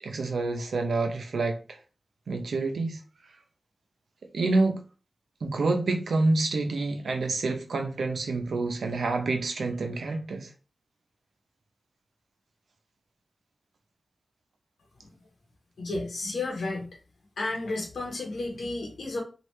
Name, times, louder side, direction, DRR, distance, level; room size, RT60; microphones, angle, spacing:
voice 1, 0.0-1.8 2.3-3.0 4.3-4.8 5.4-10.5, right 3 dB, 90° right, 0.6 m, -27 dB
voice 2, 15.8-16.9 17.4-19.2, left 2 dB, 85° left, 0.9 m, -32 dB
3.1 x 2.5 x 3.1 m
wide cardioid pair, 85°, 0 cm